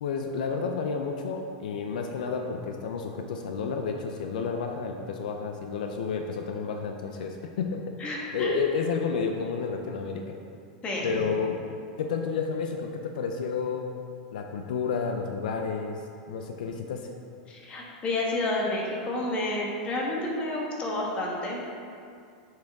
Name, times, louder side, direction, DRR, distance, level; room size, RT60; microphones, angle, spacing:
voice 1, 0.0-7.8 8.3-10.4 11.0-11.6 12.0-13.9 14.3-17.1, left 5 dB, 80° left, 4 dB, 0.5 m, -31 dB
voice 2, 8.0-8.6 10.8-11.1 17.5-21.6, left 2 dB, 25° left, -2 dB, 1.3 m, -30 dB
7.6 x 4.7 x 3.5 m, 2.3 s
supercardioid pair, 135°, 4 cm